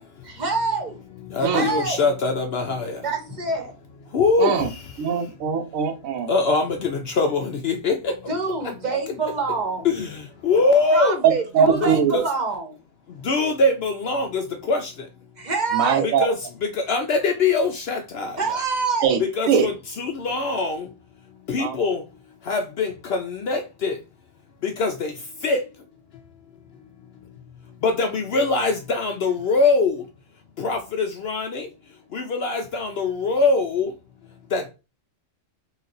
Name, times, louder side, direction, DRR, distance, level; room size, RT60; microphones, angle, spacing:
voice 1, 0.2-1.0 1.4-2.0 3.0-3.7 8.3-9.9 10.9-12.8 15.4-16.1 18.4-19.1, right 4 dB, 35° right, 0.9 m, -26 dB
voice 2, 1.3-2.9 4.1-4.5 6.3-8.1 9.8-10.1 10.4-11.2 11.8-12.2 13.3-14.4 14.7-14.8 16.2-16.3 16.9-18.3 19.4-19.7 20.0-20.8 21.5-22.0 22.5-23.9 24.8-25.1 25.4-25.6 27.8-29.9 30.6-31.7 32.1-33.9 34.5-34.7, left 3 dB, 60° left, 0.7 m, -22 dB
voice 3, 4.4-4.7 5.0-6.3 11.2-12.2 15.7-16.3 19.0-19.2 19.5-19.7 21.6-21.8, right 7 dB, 80° right, 1.1 m, -21 dB
4.1 x 2.4 x 3.9 m
omnidirectional pair, 1.4 m